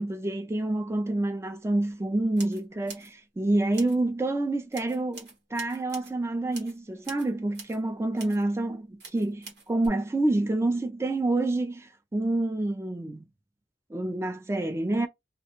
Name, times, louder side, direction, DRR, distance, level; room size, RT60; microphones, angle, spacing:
voice 1, 0.0-13.2 13.9-15.1, right 2 dB, 15° right, 0.3 m, -28 dB
sound 1, 2.4-3.1 3.7-4.0 4.7-6.1 6.5-6.8 7.0-7.8 8.2-8.4 9.0-9.9, right 4 dB, 60° right, 1.1 m, -45 dB
2.4 x 2.1 x 2.9 m
head